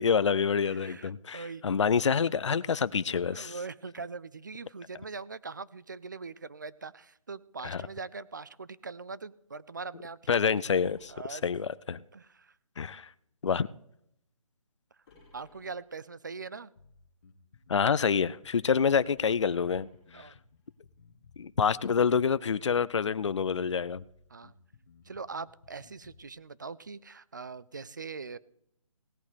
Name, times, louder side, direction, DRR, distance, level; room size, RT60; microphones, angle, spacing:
voice 1, 0.0-3.6 7.6-7.8 10.3-12.0 12.8-13.1 13.4-13.7 17.7-19.9 20.1-20.3 21.4-24.0, left 6 dB, 55° left, 0.5 m, -27 dB
voice 2, 0.7-1.6 3.3-10.8 11.1-11.4 12.1-12.5 15.3-16.7 20.1-20.4 24.3-24.5 25.1-28.4, right 4 dB, 35° right, 0.4 m, -42 dB
sound 1, 10.8-12.2 15.0-16.2 19.4-20.7, left 3 dB, 20° left, 4.3 m, -62 dB
Bass guitar, 16.8-26.3, left 5 dB, 35° left, 1.5 m, -59 dB
17.0 x 8.3 x 5.1 m
hypercardioid pair, 170°, 18 cm